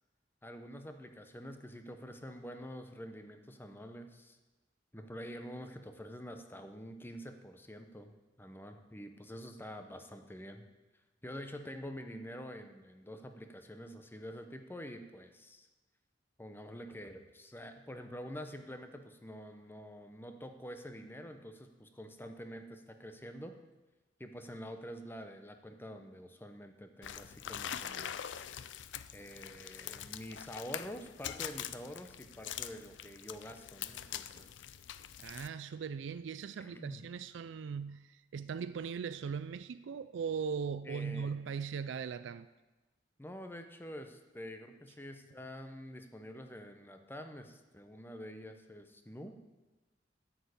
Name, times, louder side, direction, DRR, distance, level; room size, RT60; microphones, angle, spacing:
voice 1, 0.4-4.4 4.9-10.6 11.2-15.7 16.4-23.5 24.2-28.5 29.1-34.7 36.6-37.0 40.8-41.3 43.2-49.4, equal, 10° left, 0.8 m, -47 dB
sound 1, 27.0-35.5, left 10 dB, 70° left, 0.4 m, -44 dB
voice 2, 35.2-42.5, right 6 dB, 75° right, 0.4 m, -39 dB
9.2 x 6.6 x 8.2 m
head